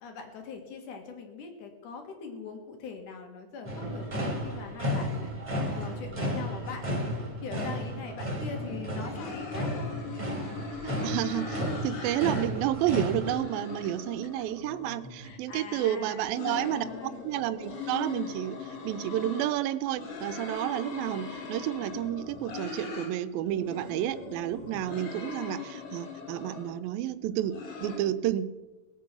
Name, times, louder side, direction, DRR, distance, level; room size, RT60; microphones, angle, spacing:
voice 1, 0.0-5.3 5.6-9.9 13.8-14.0 15.2-17.2, left 5 dB, 60° left, 4 dB, 3.2 m, -42 dB
sound 1, 3.7-13.3, equal, 15° right, 2.5 m, -33 dB
sound 2, 8.4-8.8 9.1-12.4 12.8-15.3 16.1-19.5 19.9-23.1 23.4-26.7 27.2-28.0, left 5 dB, 85° left, 4.9 m, -40 dB
voice 2, 10.8-28.5, right 12 dB, 80° right, 13 dB, 2.4 m, -31 dB
20.0 x 8.4 x 6.2 m, 1.2 s
omnidirectional pair, 4.2 m